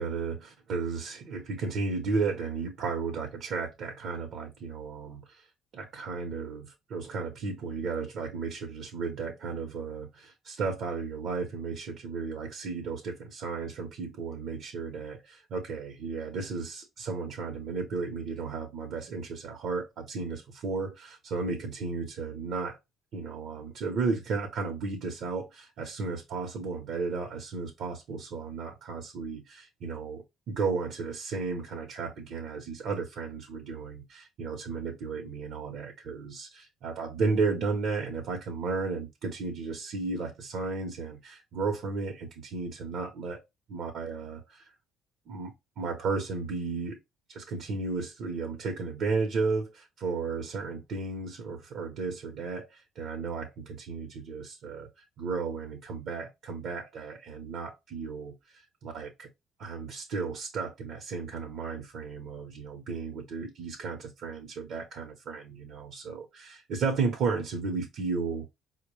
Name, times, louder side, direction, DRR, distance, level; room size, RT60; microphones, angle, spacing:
voice 1, 0.0-5.5 5.7-22.8 23.1-43.4 43.7-44.7 45.3-47.0 47.3-59.3 59.6-68.5, right 4 dB, 65° right, 0.8 m, -34 dB
4.5 x 2.2 x 3.0 m
cardioid pair, 105°, 0 cm